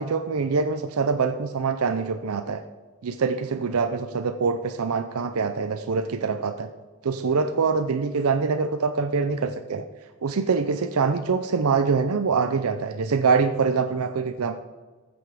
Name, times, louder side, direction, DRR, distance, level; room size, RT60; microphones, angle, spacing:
voice 1, 0.0-2.6 3.0-6.7 7.0-9.8 10.2-14.6, right 5 dB, 75° right, 8 dB, 0.5 m, -24 dB
14.0 x 7.0 x 4.8 m, 1.3 s
head